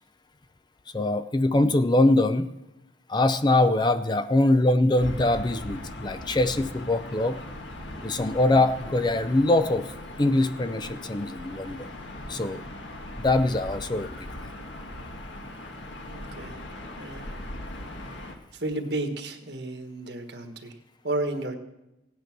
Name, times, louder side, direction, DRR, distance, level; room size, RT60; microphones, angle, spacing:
voice 1, 0.9-2.5 3.1-7.4 8.0-9.9 10.2-11.9 12.3-12.6 13.2-14.3, left 2 dB, 20° left, 11 dB, 0.5 m, -23 dB
Gull seagull / Ocean, 5.0-18.4, left 1 dB, 70° left, 1.7 m, -39 dB
voice 2, 16.1-16.6 17.0-17.2 18.6-20.7 21.0-21.6, right 2 dB, 60° right, 6 dB, 1.5 m, -32 dB
16.5 x 9.3 x 6.0 m, 0.93 s
head